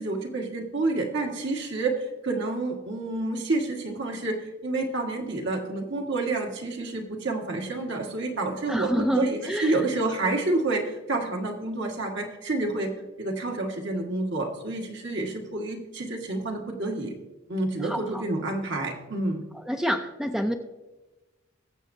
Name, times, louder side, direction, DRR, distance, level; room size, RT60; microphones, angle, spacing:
voice 1, 0.0-1.9 2.2-4.4 4.6-12.9 13.2-17.1 17.5-19.4, right 2 dB, 65° right, 1 dB, 1.7 m, -29 dB
voice 2, 8.7-9.8 17.8-18.2 19.7-20.5, equal, 5° right, 6 dB, 0.5 m, -27 dB
21.5 x 7.3 x 2.7 m, 1.1 s
head